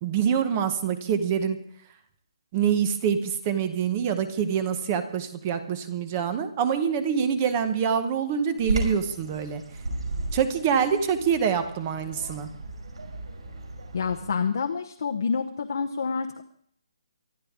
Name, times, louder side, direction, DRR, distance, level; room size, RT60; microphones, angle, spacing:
voice 1, 0.0-1.6 2.5-9.6 10.3-12.5, right 7 dB, 15° right, 10 dB, 0.9 m, -25 dB
Bird vocalization bird call bird song, 8.6-14.3, right 2 dB, 80° right, 5.9 m, -35 dB
voice 2, 13.9-16.4, left 5 dB, 40° left, 3 dB, 0.9 m, -28 dB
24.5 x 12.0 x 3.7 m, 0.64 s
hypercardioid pair, 180°, 3 cm